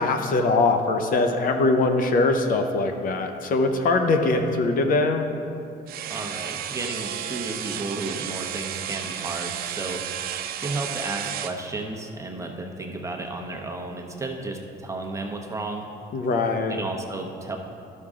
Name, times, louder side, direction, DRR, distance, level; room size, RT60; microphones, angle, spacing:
voice 1, 0.0-5.3 16.1-16.8, left 3 dB, 55° left, 5 dB, 0.7 m, -22 dB
sound 1, 5.9-11.6, right 10 dB, 60° right, 0.5 m, -32 dB
voice 2, 6.0-10.0 10.6-15.9 16.7-17.6, right 2 dB, 15° right, 1 dB, 0.9 m, -33 dB
12.0 x 6.3 x 3.7 m, 2.6 s
cardioid pair, 110°, 17 cm